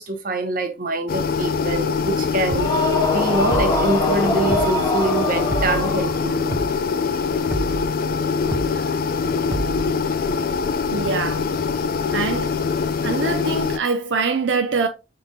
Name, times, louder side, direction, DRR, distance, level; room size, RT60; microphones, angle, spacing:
voice 1, 0.0-2.8 3.1-6.5 8.7-9.0, right 2 dB, 45° right, 0.8 m, -25 dB
sound 1, 1.1-13.8, left 5 dB, 50° left, 0.3 m, -23 dB
sound 2, 2.5-6.5, left 1 dB, 20° left, 0.8 m, -24 dB
sound 3, 2.5-2.7 3.5-3.9 4.5-4.7 5.5-5.9 6.5-6.7 7.5-7.9 8.5-8.7 9.5-9.9, right 2 dB, 15° right, 0.6 m, -28 dB
voice 2, 10.9-11.5 12.1-12.6 13.0-14.9, right 4 dB, 75° right, 0.5 m, -23 dB
5.2 x 3.9 x 2.2 m
head